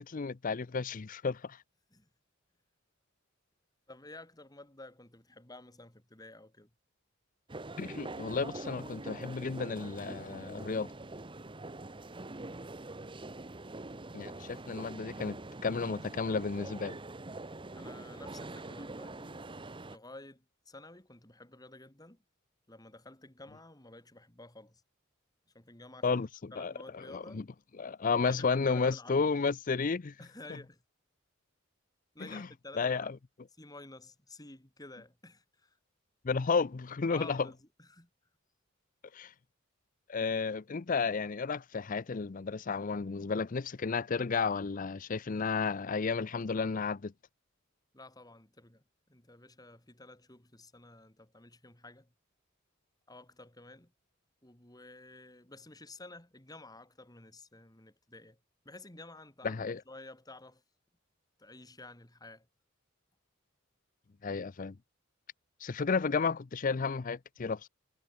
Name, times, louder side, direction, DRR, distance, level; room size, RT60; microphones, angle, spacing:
voice 1, 0.0-1.6 7.8-10.9 14.1-15.4 15.6-17.0 26.0-26.3 26.6-26.7 27.1-27.4 27.8-30.1 32.3-32.5 32.8-33.1 36.2-37.5 39.1-39.3 40.1-47.1 59.4-59.8 64.2-64.8 65.6-67.7, left 4 dB, 40° left, 0.5 m, -32 dB
voice 2, 3.9-6.7 17.7-19.5 19.8-22.2 22.7-24.8 25.5-27.5 28.2-29.1 30.2-30.8 32.1-33.1 33.6-35.8 37.1-38.1 47.9-48.8 49.1-52.1 53.1-53.9 54.4-58.4 58.6-60.6 61.4-62.5, left 2 dB, 20° left, 2.9 m, -52 dB
sound 1, 7.5-20.0, right 2 dB, 25° right, 1.0 m, -44 dB
head